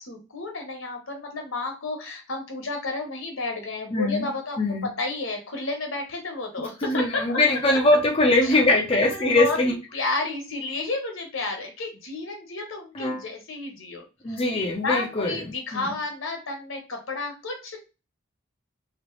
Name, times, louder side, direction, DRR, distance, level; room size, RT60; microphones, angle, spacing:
voice 1, 0.0-4.6 5.0-7.6 8.2-17.8, left 3 dB, 70° left, 2 dB, 1.2 m, -32 dB
voice 2, 3.9-4.3 4.6-4.9 6.8-9.7 12.9-13.2 14.2-15.9, left 2 dB, 30° left, -1 dB, 0.6 m, -22 dB
3.2 x 3.0 x 3.1 m, 0.29 s
head